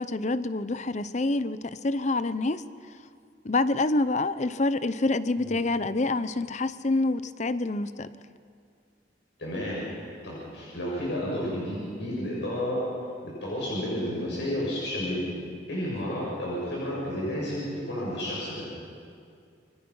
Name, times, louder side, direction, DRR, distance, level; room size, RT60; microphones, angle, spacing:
voice 1, 0.0-2.6 3.4-8.1, left 2 dB, 40° left, 14 dB, 0.7 m, -27 dB
voice 2, 9.4-9.8 10.2-12.8 13.4-15.3 15.7-18.6, left 1 dB, 75° left, -5 dB, 6.8 m, -31 dB
29.0 x 24.0 x 5.6 m, 2.4 s
head